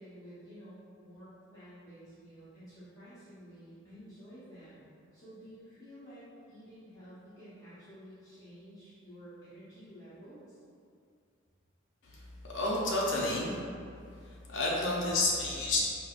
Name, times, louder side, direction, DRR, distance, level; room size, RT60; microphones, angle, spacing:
voice 1, 0.0-10.6, equal, 15° left, -13 dB, 0.7 m, -51 dB
voice 2, 12.0-13.7 14.2-15.8, left 2 dB, 65° left, -4 dB, 0.6 m, -31 dB
4.5 x 2.2 x 2.4 m, 2.3 s
head